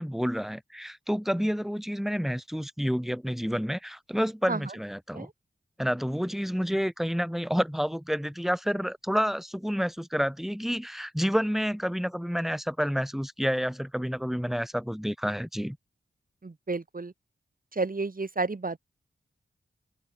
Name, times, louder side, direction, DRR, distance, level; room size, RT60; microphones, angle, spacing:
voice 1, 0.0-5.3 5.8-15.8, equal, ahead, 4.6 m, -29 dB
voice 2, 16.4-17.1 17.7-18.8, right 3 dB, 45° right, 3.3 m, -31 dB
open air
wide cardioid pair, 65°, 20 cm